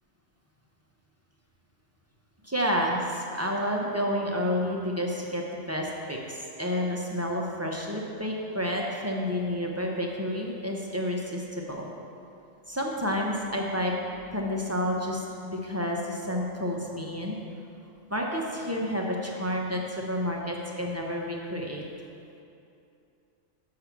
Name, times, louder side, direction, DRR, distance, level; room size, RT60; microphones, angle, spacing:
voice 1, 2.4-11.9 12.7-14.0 14.3-17.4 18.1-21.8, equal, 15° right, -2 dB, 0.5 m, -30 dB
6.9 x 5.7 x 5.9 m, 2.6 s
omnidirectional pair, 1.3 m